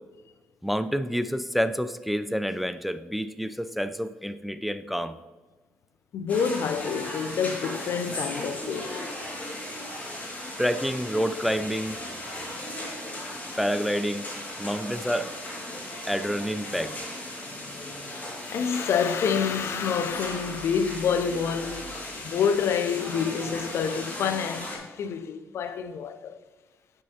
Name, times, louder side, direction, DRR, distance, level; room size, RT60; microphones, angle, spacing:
voice 1, 0.6-5.1 10.6-12.0 13.6-14.3 14.6-15.3 16.1-17.0, equal, ahead, 0.3 m, -28 dB
voice 2, 6.1-9.1 18.0-26.4, left 6 dB, 70° left, 0.5 m, -28 dB
sound 1, 6.3-24.8, left 1 dB, 35° left, 2.2 m, -37 dB
8.9 x 6.3 x 2.8 m
cardioid pair, 75°, 5 cm